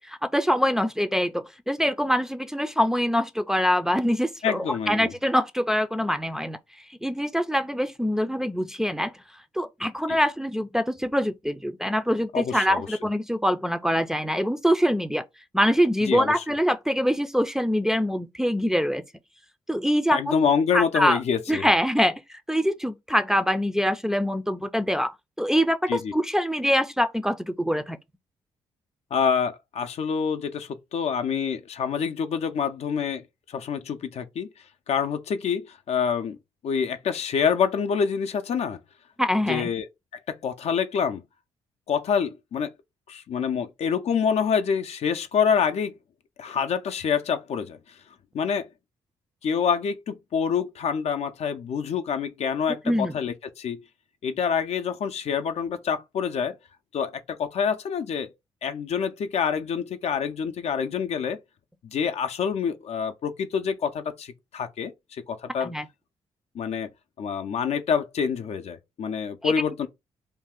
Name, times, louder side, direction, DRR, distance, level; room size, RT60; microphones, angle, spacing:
voice 1, 0.0-6.6 7.0-9.1 9.6-15.2 15.5-19.0 19.7-20.2 20.7-21.2 21.5-22.2 22.5-28.0 39.2-39.7 52.9-53.1 65.6-65.9 69.4-69.5, equal, 5° right, 0.4 m, -24 dB
voice 2, 4.4-5.1 10.1-10.2 12.3-13.0 16.0-16.3 20.1-21.7 25.9-26.1 29.1-34.5 34.9-36.4 36.6-38.8 39.5-39.9 40.3-41.2 41.9-42.7 43.1-46.0 46.4-47.8 48.3-48.7 49.4-53.8 54.2-56.5 56.9-58.3 58.6-61.4 61.8-65.7 66.5-66.9 67.2-69.9, left 7 dB, 65° left, 0.5 m, -26 dB
2.7 x 2.3 x 3.6 m
supercardioid pair, 60°, 12 cm